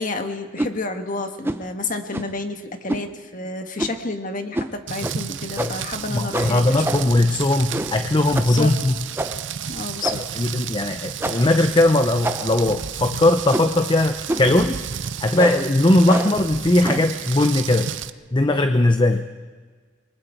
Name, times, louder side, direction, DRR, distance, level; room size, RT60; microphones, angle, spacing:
voice 1, 0.0-6.8 8.4-8.7 9.7-10.2, left 3 dB, 45° left, 6 dB, 1.6 m, -30 dB
sound 1, 0.6-0.8 1.4-1.7 2.1-2.4 2.9-3.1 3.8-4.1 4.5-4.7 5.0-5.2 5.6-5.9 6.3-7.2 7.7-8.0 8.3-8.6 9.2-9.5 10.0-10.4 11.2-11.6 12.2-12.7 13.5-13.8 14.3-14.6 15.3-15.7 16.1-16.4 16.8-17.1, right 1 dB, 10° right, 0.8 m, -27 dB
Rain, 4.9-18.1, right 8 dB, 70° right, 0.6 m, -32 dB
voice 2, 6.1-8.9 10.4-14.8 15.2-17.9 18.3-19.2, left 2 dB, 25° left, 8 dB, 0.7 m, -19 dB
28.5 x 23.0 x 4.6 m, 1.5 s
head